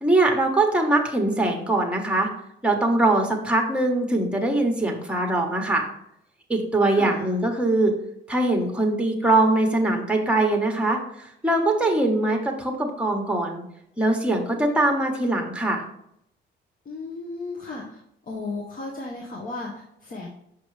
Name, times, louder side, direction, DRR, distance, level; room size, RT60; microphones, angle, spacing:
voice 1, 0.0-2.3 2.6-5.9 6.5-7.9 8.3-13.6 14.0-15.8, right 2 dB, 5° right, 3 dB, 1.3 m, -22 dB
voice 2, 6.9-7.3 16.9-18.0 18.3-20.3, left 3 dB, 45° left, 0 dB, 1.1 m, -35 dB
5.9 x 5.0 x 3.3 m, 0.74 s
cardioid pair, 90°, 20 cm